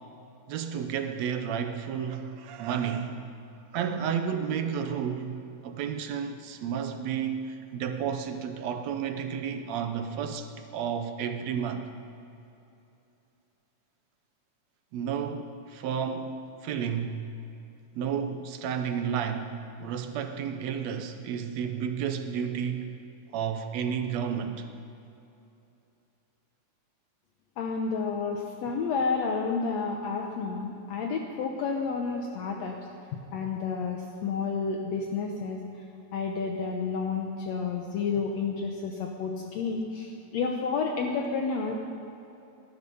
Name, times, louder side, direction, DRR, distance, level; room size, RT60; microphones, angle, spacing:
voice 1, 0.5-3.3 3.7-11.9 14.9-17.2 18.0-22.9 23.3-24.7, right 7 dB, 70° right, 7 dB, 1.8 m, -32 dB
voice 2, 27.6-32.8 33.3-35.6 36.1-41.7, left 5 dB, 70° left, 1 dB, 2.0 m, -30 dB
18.5 x 12.0 x 5.5 m, 2.8 s
omnidirectional pair, 3.5 m